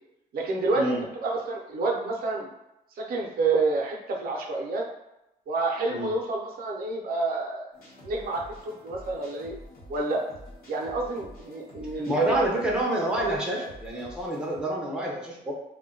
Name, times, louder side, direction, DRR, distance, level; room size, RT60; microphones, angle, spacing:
voice 1, 0.3-2.5 3.0-4.8 5.5-7.7 8.0-9.6 9.9-10.2 10.7-12.4, right 3 dB, 65° right, 0 dB, 0.5 m, -29 dB
sound 1, 7.7-14.6, equal, 65° left, 0.9 m, -48 dB
voice 2, 12.1-15.5, right 1 dB, 5° right, -3 dB, 0.5 m, -27 dB
2.2 x 2.1 x 3.6 m, 0.90 s
wide cardioid pair, 160°, 16 cm